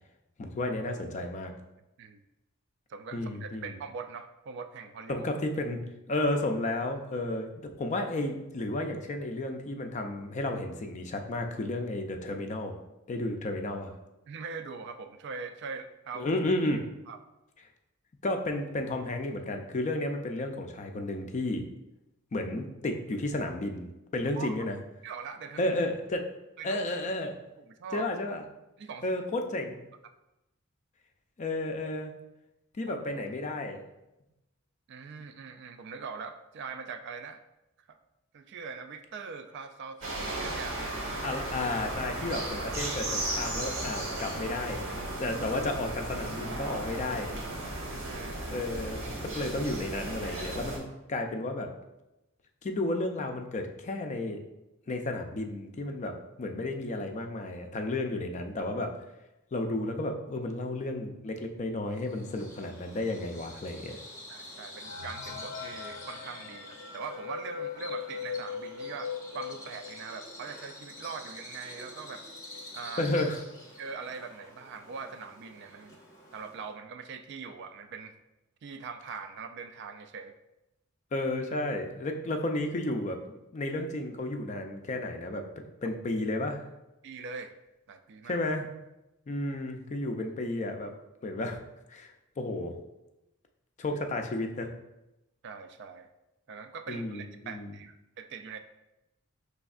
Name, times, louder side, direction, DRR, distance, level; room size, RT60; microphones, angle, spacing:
voice 1, 0.4-1.5 3.1-3.6 5.1-5.8 6.1-12.8 13.1-13.9 16.2-16.8 18.2-21.7 22.3-24.8 25.6-26.2 26.6-27.3 27.9-28.4 29.0-29.8 31.4-32.1 32.8-33.8 41.2-44.8 45.2-47.3 48.5-50.8 51.1-51.7 52.6-54.4 54.9-58.9 59.5-64.0 73.0-73.4 81.1-83.2 83.5-85.4 85.8-86.6 88.3-88.7 89.3-90.9 91.2-91.6 91.9-92.7 93.8-94.7 96.9-97.7, left 2 dB, 35° left, 5 dB, 0.4 m, -32 dB
voice 2, 2.9-5.3 14.3-16.4 17.1-17.2 24.3-24.5 25.0-25.8 26.6-26.8 27.6-28.1 28.8-29.1 32.9-33.0 34.9-37.4 37.9-38.0 38.3-40.9 47.9-48.4 64.3-72.2 72.7-73.1 73.8-76.0 76.3-78.1 78.6-80.4 87.0-87.5 87.9-88.4 95.4-96.1 96.5-98.6, right 5 dB, 55° right, 9 dB, 0.3 m, -42 dB
sound 1, 40.0-50.8, right 1 dB, 85° right, 1.2 m, -35 dB
Bird vocalization bird call bird song, 61.9-76.7, left 1 dB, 15° left, 0.7 m, -48 dB
sound 2, 64.8-70.2 70.7-70.8 71.0-71.1 71.9-72.0 72.3-72.7, left 6 dB, 85° left, 0.5 m, -40 dB
5.1 x 3.4 x 2.4 m, 0.95 s
head